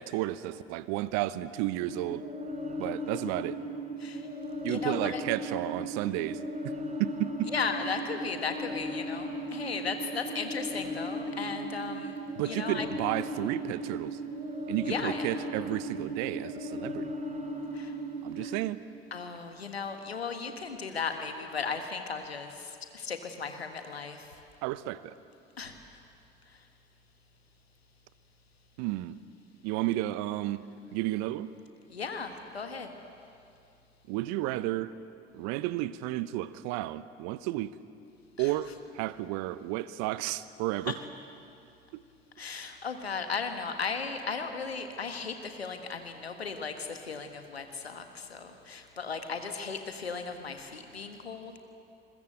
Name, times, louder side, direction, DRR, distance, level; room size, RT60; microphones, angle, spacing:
voice 1, 0.0-2.2 2.8-3.6 4.6-6.4 6.6-6.7 7.0-7.5 12.4-14.2 14.7-17.1 18.2-18.8 24.6-25.2 28.8-29.2 29.6-30.6 30.9-31.5 34.1-34.9 35.3-37.7 38.4-38.7 38.9-41.0 41.9-42.0, right 16 dB, 65° right, 16 dB, 0.9 m, -32 dB
sound 1, 1.7-18.5, equal, 25° right, 3.8 m, -37 dB
voice 2, 4.7-5.2 7.5-12.2 12.4-12.9 14.8-15.3 17.7-17.9 18.4-18.5 19.1-24.3 25.6-25.7 31.9-32.9 38.4-38.5 40.9-41.0 42.4-51.6, left 5 dB, 90° left, 6 dB, 1.6 m, -36 dB
27.5 x 22.0 x 7.9 m, 2.5 s
figure-of-eight pair, 55°, 30 cm